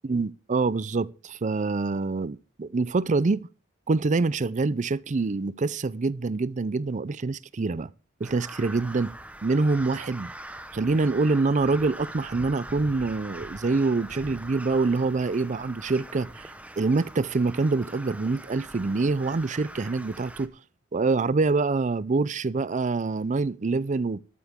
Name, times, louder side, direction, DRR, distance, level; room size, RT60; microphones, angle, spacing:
voice 1, 0.1-3.5 3.9-7.9 8.2-9.1 9.4-10.3 10.7-16.5 16.8-20.5 20.9-24.2, right 3 dB, 40° right, 0.5 m, -25 dB
Crow, 8.2-20.5, right 1 dB, 5° right, 0.9 m, -42 dB
13.0 x 13.0 x 3.6 m
head